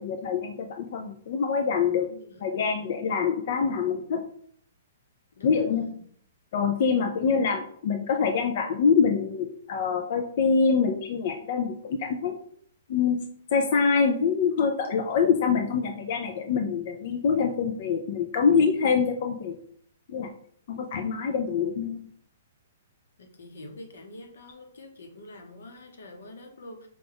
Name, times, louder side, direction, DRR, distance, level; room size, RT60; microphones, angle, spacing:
voice 1, 0.0-2.1 2.4-4.2 5.4-6.0 6.5-12.4 12.9-13.2 13.5-19.6 20.1-20.3 20.7-22.1, left 5 dB, 40° left, 4 dB, 0.3 m, -25 dB
voice 2, 2.0-2.6 5.4-6.0 21.3-21.4 23.2-26.9, left 1 dB, 80° left, 4 dB, 0.9 m, -46 dB
5.0 x 2.3 x 3.4 m, 0.63 s
hypercardioid pair, 175°, 0 cm